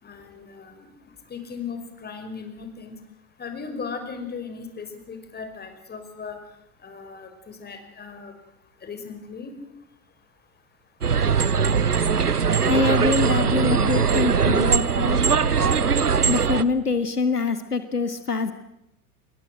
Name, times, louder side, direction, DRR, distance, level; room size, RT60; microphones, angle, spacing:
voice 1, 0.0-0.9 1.3-2.9 3.4-6.4 6.8-8.3 8.8-9.5, left 5 dB, 20° left, 7 dB, 5.7 m, -37 dB
sound 1, 11.0-16.6, right 6 dB, 85° right, 1.0 m, -21 dB
voice 2, 12.7-15.2 16.2-18.5, left 4 dB, 85° left, 11 dB, 1.7 m, -24 dB
27.5 x 22.0 x 7.8 m, 0.84 s
figure-of-eight pair, 85°, 45 cm